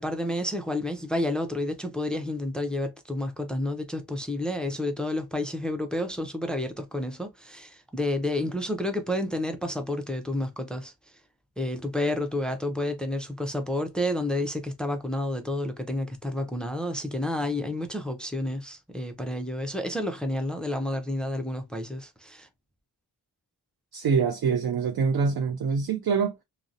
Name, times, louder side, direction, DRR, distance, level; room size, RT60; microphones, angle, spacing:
voice 1, 0.0-10.9 11.6-22.5, left 1 dB, ahead, 0.3 m, -30 dB
voice 2, 23.9-26.4, right 5 dB, 55° right, 0.5 m, -25 dB
2.6 x 2.0 x 2.4 m
wide cardioid pair, 100°, 45 cm